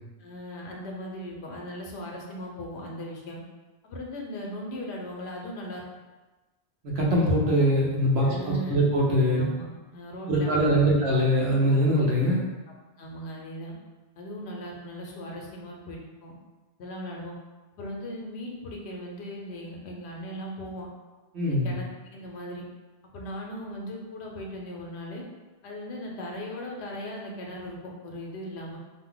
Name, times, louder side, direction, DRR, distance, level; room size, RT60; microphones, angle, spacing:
voice 1, 0.2-3.4 3.8-5.8 8.2-8.8 9.4-11.1 13.0-13.7 14.2-16.3 16.8-17.3 17.8-20.9 21.4-22.6 23.1-25.2 25.6-28.8, equal, 85° left, -1 dB, 0.9 m, -38 dB
voice 2, 6.8-9.5 10.3-12.4 21.3-21.7, equal, 75° right, -4 dB, 1.0 m, -22 dB
2.5 x 2.1 x 3.7 m, 1.2 s
omnidirectional pair, 1.1 m